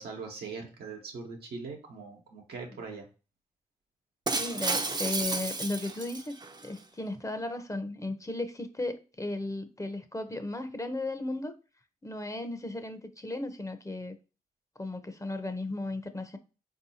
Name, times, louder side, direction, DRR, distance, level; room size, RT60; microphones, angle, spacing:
voice 1, 0.0-3.0, right 4 dB, 85° right, 1 dB, 0.9 m, -41 dB
voice 2, 4.3-6.3 6.6-11.5 12.0-14.2 14.8-16.4, left 2 dB, 20° left, 9 dB, 0.6 m, -35 dB
Shatter, 4.3-6.7, right 3 dB, 25° right, 0.5 m, -32 dB
4.3 x 2.7 x 2.7 m, 0.33 s
supercardioid pair, 40°, 16 cm